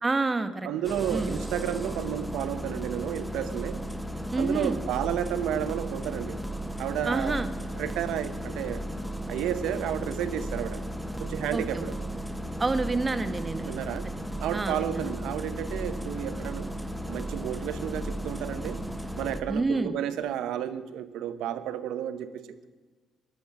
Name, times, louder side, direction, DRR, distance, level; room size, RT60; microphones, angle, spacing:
voice 1, 0.0-0.7 1.1-1.4 4.3-4.8 7.1-7.5 11.5-11.8 12.6-13.7 14.3-15.1 19.5-20.0, right 3 dB, 25° right, 11 dB, 1.2 m, -28 dB
voice 2, 0.6-3.8 4.4-6.4 6.8-7.4 7.8-8.8 9.3-10.8 11.2-12.0 13.7-14.1 14.4-16.7 17.1-18.8 19.2-22.7, right 10 dB, 85° right, 13 dB, 0.9 m, -32 dB
Engine starting, 0.8-19.4, equal, ahead, 1.2 m, -35 dB
13.5 x 11.5 x 5.9 m, 1.4 s
cardioid pair, 90°, 0 cm